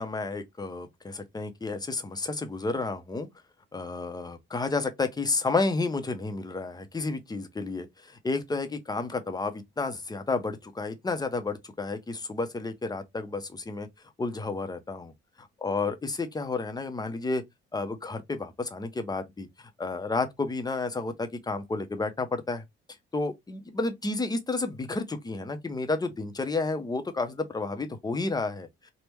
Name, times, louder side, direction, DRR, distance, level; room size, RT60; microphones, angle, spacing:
voice 1, 0.0-3.3 3.7-13.9 14.2-15.1 15.4-17.4 17.7-22.6 23.1-28.7, left 3 dB, 20° left, 0.6 m, -31 dB
3.3 x 2.1 x 3.0 m
cardioid pair, 90°, 20 cm